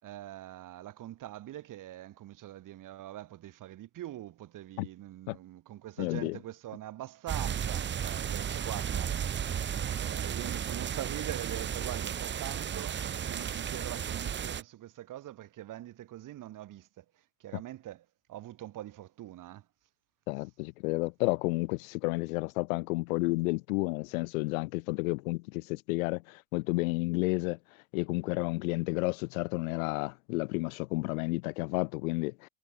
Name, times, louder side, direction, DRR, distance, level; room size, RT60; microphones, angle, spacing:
voice 1, 0.0-9.1 9.9-17.0 17.4-19.7, right 13 dB, 45° right, 7.5 m, -43 dB
voice 2, 6.0-6.4 20.3-27.6 27.9-32.5, left 25 dB, 70° left, 5.1 m, -31 dB
sound 1, 7.3-14.6, right 8 dB, 25° right, 1.3 m, -34 dB
hypercardioid pair, 95°, 43 cm